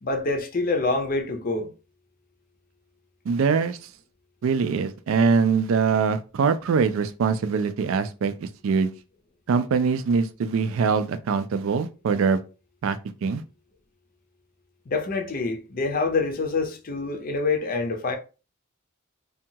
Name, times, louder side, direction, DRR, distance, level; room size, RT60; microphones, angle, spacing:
voice 1, 0.0-1.7 14.9-18.2, left 3 dB, 40° left, 0.5 m, -26 dB
voice 2, 3.3-3.8 4.4-8.9 9.5-12.4 12.8-13.4, right 5 dB, 70° right, 0.3 m, -23 dB
2.7 x 2.3 x 2.7 m
head